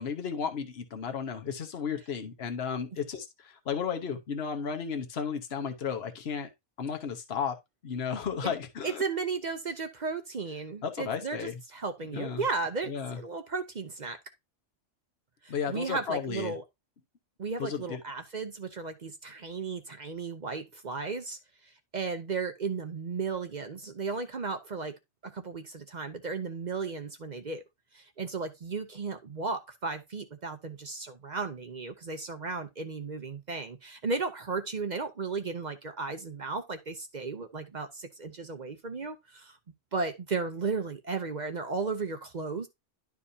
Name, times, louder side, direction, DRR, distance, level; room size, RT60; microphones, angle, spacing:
voice 1, 0.0-6.5 6.8-7.5 7.8-9.0 10.8-11.5 12.1-12.4 12.9-13.2 15.5-16.5 17.6-18.0, left 6 dB, 60° left, 1.3 m, -34 dB
voice 2, 8.8-14.2 15.4-16.6 17.4-27.6 27.9-39.6 39.9-42.7, right 4 dB, 45° right, 0.8 m, -35 dB
11.5 x 4.7 x 2.7 m
omnidirectional pair, 1.2 m